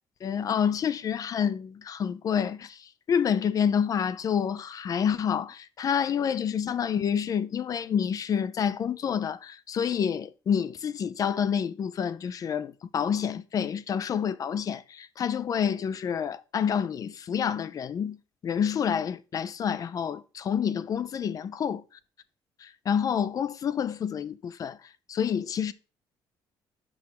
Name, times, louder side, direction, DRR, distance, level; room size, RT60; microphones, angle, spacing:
voice 1, 0.2-18.2 18.4-21.8 22.6-24.8 25.1-25.7, left 7 dB, 40° left, 0.5 m, -28 dB
6.2 x 5.6 x 4.7 m
cardioid pair, 125°, 9 cm